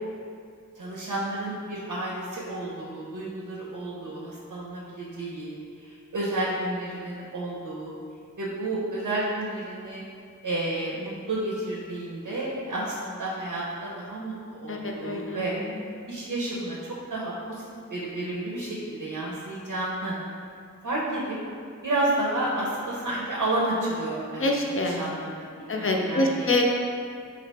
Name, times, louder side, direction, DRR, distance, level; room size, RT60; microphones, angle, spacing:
voice 1, 0.8-7.9 8.4-10.0 10.4-15.5 16.1-17.6 17.9-20.2 20.8-21.4 21.8-26.5, right 2 dB, 75° right, -5 dB, 0.6 m, -31 dB
voice 2, 14.7-15.8 24.4-25.0 25.7-26.6, left 2 dB, 40° left, 0 dB, 0.5 m, -26 dB
4.0 x 2.8 x 3.3 m, 2.2 s
wide cardioid pair, 65°, 32 cm